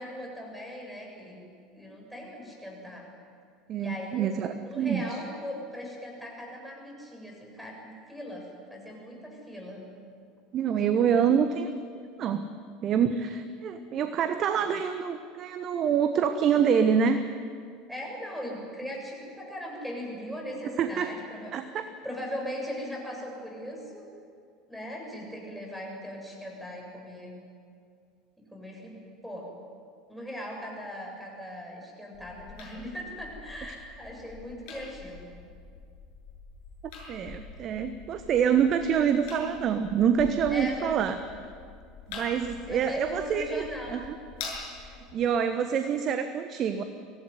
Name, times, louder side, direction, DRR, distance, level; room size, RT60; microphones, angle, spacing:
voice 1, 0.0-1.4 1.7-3.1 3.8-4.3 4.6-9.9 17.9-21.6 22.0-24.0 24.7-27.3 28.4-28.9 29.2-29.5 30.1-35.3 40.5-40.9 42.7-44.0, equal, ahead, 0 dB, 7.6 m, -39 dB
voice 2, 3.7-5.2 10.5-11.7 12.2-12.5 12.8-17.3 20.6-21.1 21.5-21.9 37.1-41.5 42.1-44.1 44.8-46.8, right 7 dB, 40° right, 9 dB, 1.1 m, -26 dB
sound 1, 32.1-45.1, left 4 dB, 55° left, 7.0 m, -45 dB
24.0 x 17.5 x 9.6 m, 2.3 s
figure-of-eight pair, 70°, 0 cm